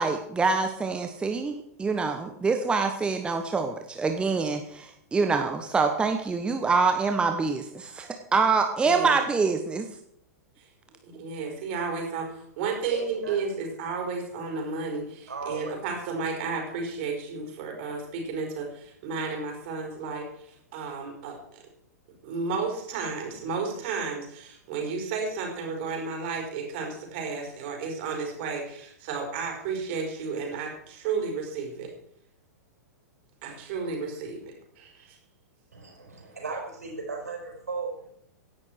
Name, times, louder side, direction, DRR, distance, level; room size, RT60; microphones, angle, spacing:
voice 1, 0.0-9.9, right 4 dB, 10° right, 5 dB, 1.1 m, -25 dB
voice 2, 8.8-9.2 10.6-10.7 11.0-21.4 22.2-31.9 33.4-35.2, right 4 dB, 45° right, 1 dB, 5.0 m, -32 dB
voice 3, 12.9-13.5 15.3-15.8 35.7-38.1, right 4 dB, 70° right, 1 dB, 5.6 m, -36 dB
16.5 x 11.0 x 4.7 m, 0.72 s
figure-of-eight pair, 100°, 9 cm